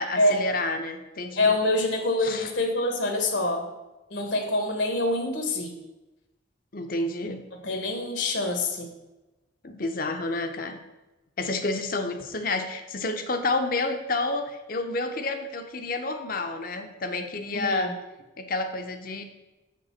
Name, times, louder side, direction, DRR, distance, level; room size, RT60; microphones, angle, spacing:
voice 1, 0.0-1.5 2.2-2.5 6.7-7.4 9.6-10.8 11.4-17.9 18.4-19.2, left 2 dB, 45° left, 7 dB, 0.8 m, -29 dB
voice 2, 1.4-3.7 4.1-5.7 7.6-8.9 17.5-17.9, left 2 dB, 70° left, 4 dB, 1.4 m, -25 dB
6.8 x 5.2 x 5.8 m, 1.0 s
head